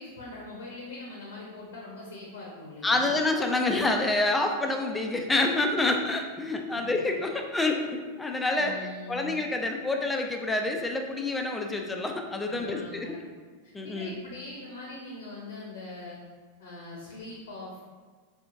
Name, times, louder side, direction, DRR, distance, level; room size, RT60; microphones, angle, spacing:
voice 1, 0.0-3.1 6.7-6.8 8.5-9.4 12.4-13.2 13.6-16.2 16.6-17.8, left 2 dB, 60° left, -3 dB, 0.7 m, -42 dB
voice 2, 2.8-13.2 13.7-14.2, left 2 dB, 10° left, 3 dB, 0.4 m, -27 dB
4.0 x 3.0 x 2.5 m, 1.5 s
figure-of-eight pair, 90°, 0 cm